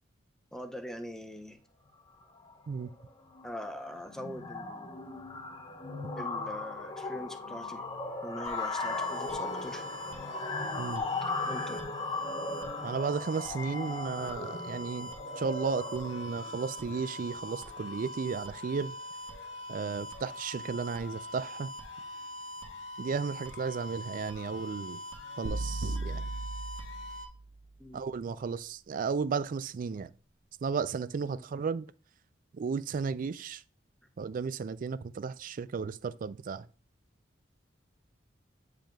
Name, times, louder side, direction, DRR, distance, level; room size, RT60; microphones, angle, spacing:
voice 1, 0.5-1.6 3.4-5.0 6.2-7.8 8.2-9.9 11.3-11.8 27.8-28.0 31.3-31.4, equal, 5° left, 0.6 m, -42 dB
sound 1, 2.2-2.5 2.8-3.1 3.3-18.2, left 3 dB, 25° left, 0.9 m, -38 dB
sound 2, 8.4-27.3, left 1 dB, 70° left, 1.4 m, -43 dB
voice 2, 12.8-15.1 15.4-19.0 19.7-21.7 23.0-25.0 25.4-26.2 27.9-30.1 30.6-31.9 32.5-33.6 34.2-36.7, right 5 dB, 45° right, 0.3 m, -34 dB
sound 3, 25.4-27.6, right 2 dB, 90° right, 0.7 m, -36 dB
8.9 x 5.0 x 2.3 m
head